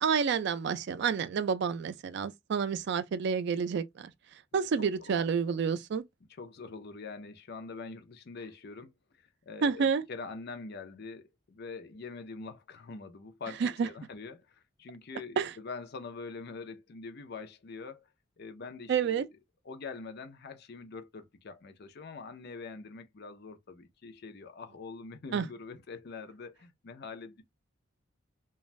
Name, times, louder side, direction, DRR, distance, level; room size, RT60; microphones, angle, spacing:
voice 1, 0.0-4.1 4.5-6.0 9.6-10.0 13.6-13.9 15.4-15.5 18.9-19.3 25.3-25.5, right 6 dB, 60° right, 0.3 m, -29 dB
voice 2, 6.4-8.9 9.2-18.1 18.4-19.3 19.6-27.4, left 4 dB, 55° left, 0.5 m, -44 dB
2.5 x 2.3 x 3.1 m
head